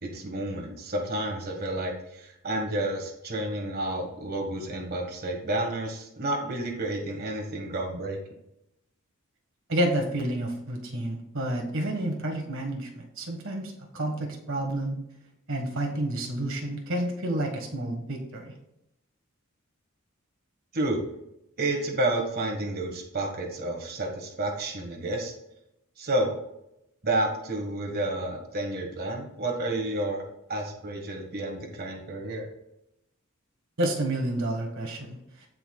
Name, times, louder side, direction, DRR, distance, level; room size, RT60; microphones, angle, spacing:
voice 1, 0.0-8.2 20.7-21.0 21.6-25.3 26.0-26.3 27.0-30.2 30.5-32.5, right 1 dB, 45° right, 1 dB, 1.6 m, -30 dB
voice 2, 9.7-15.0 15.5-18.5 33.8-35.2, right 1 dB, 65° right, 1 dB, 1.6 m, -30 dB
16.0 x 5.8 x 2.3 m, 0.82 s
head